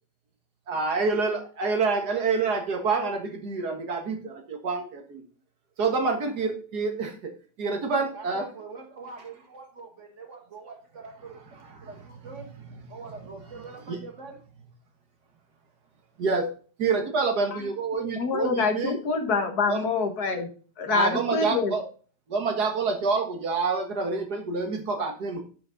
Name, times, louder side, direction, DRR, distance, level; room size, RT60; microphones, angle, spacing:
voice 1, 0.7-5.2 5.8-7.3 7.6-8.5 9.2-9.3 10.6-10.7 11.2-14.1 16.2-16.5 16.8-19.0 19.7-19.9 20.9-21.9 22.3-25.4, right 4 dB, 70° right, 2.1 m, -28 dB
voice 2, 8.1-11.4 11.8-12.4 12.9-14.4, right 4 dB, 45° right, 2.0 m, -43 dB
voice 3, 18.2-20.5 20.8-21.7, left 4 dB, 65° left, 1.9 m, -26 dB
9.4 x 5.9 x 3.9 m
omnidirectional pair, 1.8 m